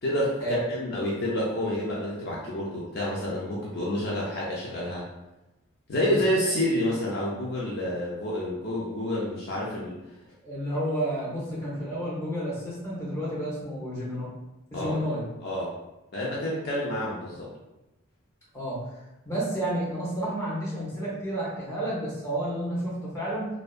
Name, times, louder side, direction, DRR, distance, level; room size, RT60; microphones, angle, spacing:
voice 1, 0.0-5.0 5.9-10.0 14.7-15.0 15.4-15.7 16.1-17.5, left 1 dB, 50° left, -5 dB, 0.4 m, -28 dB
voice 2, 10.4-14.3 14.7-15.2 18.5-18.8 19.2-23.5, right 1 dB, 15° left, -8 dB, 0.8 m, -31 dB
2.6 x 2.1 x 2.3 m, 0.97 s
head